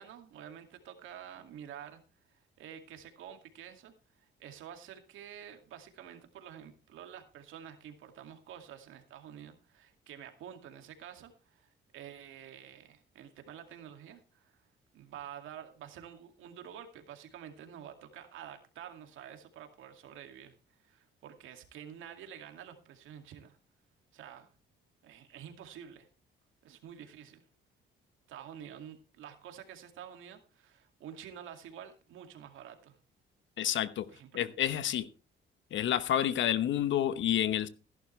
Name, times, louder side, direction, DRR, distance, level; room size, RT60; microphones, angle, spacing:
voice 1, 0.0-2.0 2.6-14.6 14.9-20.5 20.8-23.6 24.1-24.5 25.0-26.1 26.6-27.4 28.3-33.0 34.1-34.5, right 9 dB, 85° right, 6 dB, 2.3 m, -49 dB
voice 2, 33.6-34.1 34.3-35.1 35.7-37.7, left 11 dB, 75° left, 15 dB, 1.0 m, -29 dB
15.5 x 11.5 x 3.2 m, 0.32 s
cardioid pair, 90°, 20 cm